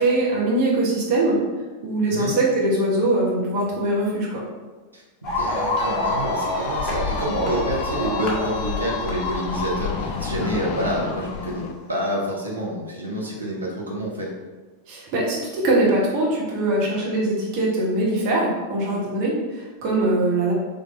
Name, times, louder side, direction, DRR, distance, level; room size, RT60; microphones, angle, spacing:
voice 1, 0.0-1.4 1.8-4.4 14.9-20.5, right 2 dB, 45° right, -4 dB, 1.4 m, -22 dB
voice 2, 4.9-14.3, right 1 dB, 80° right, -3 dB, 1.1 m, -28 dB
sound 1, 5.2-11.6, left 2 dB, 25° left, 1.4 m, -28 dB
sound 2, 5.5-11.7, left 5 dB, 40° left, 0.4 m, -33 dB
4.0 x 3.2 x 3.8 m, 1.3 s
figure-of-eight pair, 90°, 0 cm